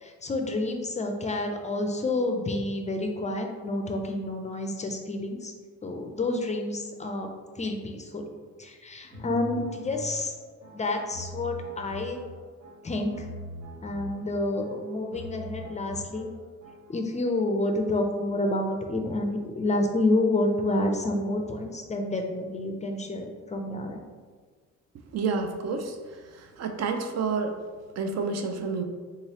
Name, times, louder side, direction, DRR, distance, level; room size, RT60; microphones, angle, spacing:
voice 1, 0.0-5.5 5.8-7.3 7.6-8.3 8.6-10.3 10.7-12.2 12.8-13.3 13.8-16.3 16.9-24.0, left 2 dB, 25° left, 3 dB, 0.4 m, -29 dB
sound 1, 9.1-17.0, equal, 80° right, 1.5 m, -43 dB
voice 2, 25.1-26.0 26.6-27.5 28.0-28.8, right 4 dB, 60° right, 5 dB, 0.5 m, -29 dB
3.6 x 3.0 x 2.8 m, 1.5 s
cardioid pair, 90°, 30 cm